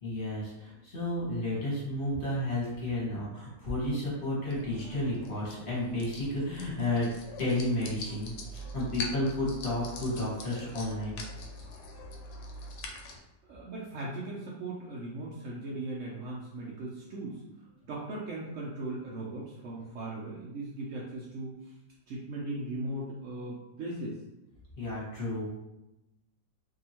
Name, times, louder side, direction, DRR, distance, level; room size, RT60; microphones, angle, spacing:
voice 1, 0.0-7.1 7.4-11.2 24.8-25.5, left 1 dB, 35° left, -7 dB, 1.1 m, -32 dB
sound 1, 4.5-13.2, left 1 dB, 75° left, 1.1 m, -43 dB
voice 2, 13.5-17.4 17.9-21.7 22.1-24.2, right 2 dB, 90° right, -5 dB, 0.6 m, -38 dB
2.7 x 2.7 x 2.8 m, 0.95 s
omnidirectional pair, 1.9 m